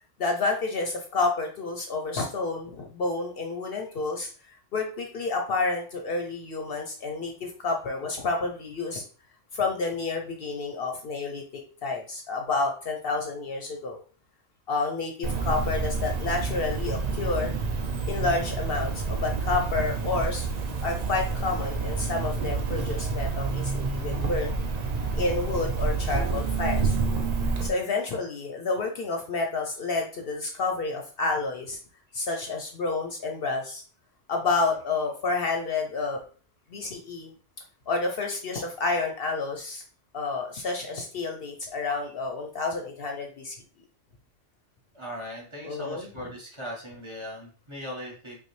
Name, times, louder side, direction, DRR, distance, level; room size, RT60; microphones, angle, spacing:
voice 1, 0.2-9.0 9.5-11.4 11.8-14.0 14.7-17.5 18.1-20.5 20.8-24.6 25.1-27.0 27.6-31.8 32.1-33.8 34.3-36.2 36.7-37.3 37.9-39.8 40.1-43.6 45.6-46.3, left 3 dB, 60° left, 2 dB, 0.8 m, -29 dB
Cricket, 15.2-27.7, right 4 dB, 45° right, 0.6 m, -28 dB
voice 2, 44.9-48.4, equal, 25° right, -2 dB, 1.1 m, -39 dB
5.3 x 2.3 x 3.1 m, 0.40 s
omnidirectional pair, 1.2 m